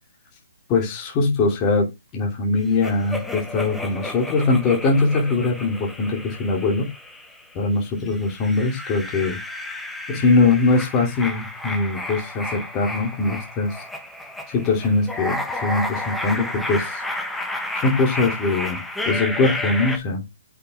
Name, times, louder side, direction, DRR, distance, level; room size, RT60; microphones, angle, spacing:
voice 1, 0.7-1.9 2.1-6.9 7.5-9.4 10.1-13.8 14.5-17.0 17.7-18.8 19.0-20.2, left 3 dB, 25° left, 0 dB, 3.0 m, -21 dB
sound 1, 2.8-7.5 8.1-20.0, left 1 dB, 5° left, 1.3 m, -31 dB
8.3 x 6.2 x 3.6 m, 0.22 s
hypercardioid pair, 145°, 0 cm